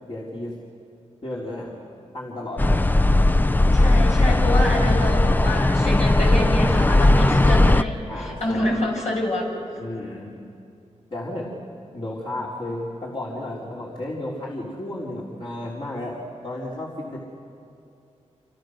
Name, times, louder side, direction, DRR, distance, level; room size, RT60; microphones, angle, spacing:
voice 1, 0.1-0.5 1.2-1.7 2.1-2.7 3.1-3.5 4.2-4.7 8.1-8.7 9.8-10.3 11.1-11.5 11.9-17.2, left 1 dB, 45° left, -5 dB, 4.2 m, -33 dB
sound 1, 2.6-7.8, left 2 dB, 15° left, 0.6 m, -17 dB
voice 2, 3.7-9.5, left 1 dB, 70° left, -2 dB, 7.9 m, -27 dB
29.5 x 27.5 x 6.7 m, 2.5 s
cardioid pair, 80°, 12 cm